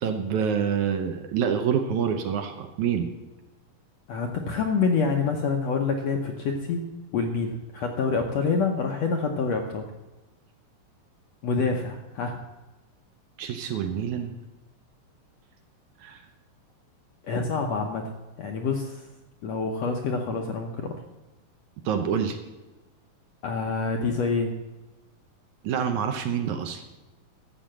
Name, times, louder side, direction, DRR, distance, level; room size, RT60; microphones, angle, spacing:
voice 1, 0.0-3.1 13.4-14.3 16.0-16.2 21.9-22.4 25.6-27.0, right 7 dB, 70° right, 6 dB, 2.0 m, -27 dB
voice 2, 4.1-6.8 7.1-9.9 11.4-12.4 17.3-18.1 18.4-19.0 19.4-20.9 23.4-24.5, left 4 dB, 70° left, 3 dB, 1.6 m, -27 dB
13.5 x 6.9 x 7.5 m, 1.1 s
omnidirectional pair, 4.0 m